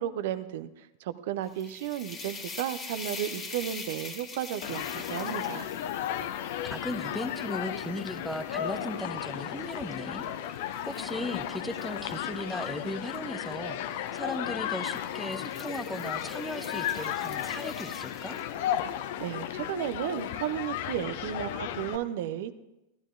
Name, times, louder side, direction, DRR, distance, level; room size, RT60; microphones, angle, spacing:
voice 1, 0.0-5.7 19.2-22.6, right 11 dB, 55° right, 14 dB, 0.5 m, -34 dB
sound 1, 1.4-8.6 9.2-13.2 14.1-14.3 14.7-18.9, left 3 dB, 25° left, 1.7 m, -45 dB
Human group actions, 4.6-22.0, left 10 dB, 50° left, 0.6 m, -34 dB
voice 2, 6.2-18.4, left 1 dB, ahead, 7 dB, 0.6 m, -37 dB
14.5 x 12.5 x 2.5 m, 0.95 s
figure-of-eight pair, 90°, 0 cm